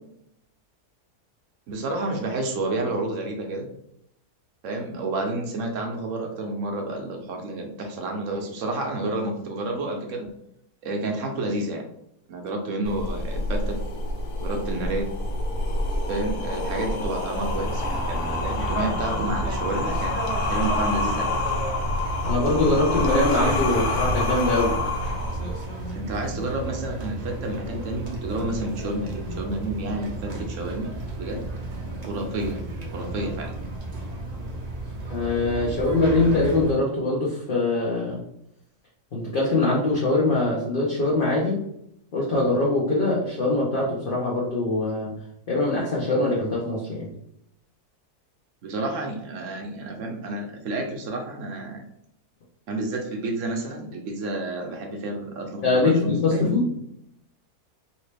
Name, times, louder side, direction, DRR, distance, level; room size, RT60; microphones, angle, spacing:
voice 1, 1.7-3.7 4.6-10.3 10.8-11.9 12.3-13.8 14.4-15.1 16.1-20.2 20.5-21.3 25.9-31.4 32.1-32.6 32.9-33.5 48.6-51.8 52.7-56.5, right 2 dB, 65° right, 2 dB, 0.9 m, -30 dB
sound 1, 12.8-25.8, left 2 dB, 85° left, 1.2 m, -27 dB
sound 2, 17.4-36.7, right 2 dB, 45° right, 0.5 m, -33 dB
voice 2, 22.2-24.8 35.1-38.2 39.1-41.6 42.1-45.1 45.5-47.1 55.6-56.7, left 2 dB, 45° left, -5 dB, 0.7 m, -23 dB
2.9 x 2.8 x 3.2 m, 0.75 s
omnidirectional pair, 1.6 m